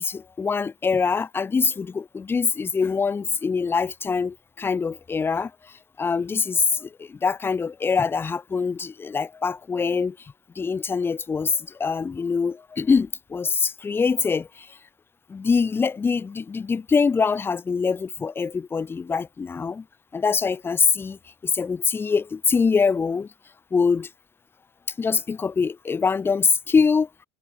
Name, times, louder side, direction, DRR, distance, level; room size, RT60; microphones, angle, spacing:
voice 1, 0.0-5.5 6.0-10.2 10.6-14.8 15.3-19.8 20.1-23.3 23.7-24.1 25.0-27.1, left 5 dB, 5° left, 0.5 m, -24 dB
supercardioid pair, 175°, 31 cm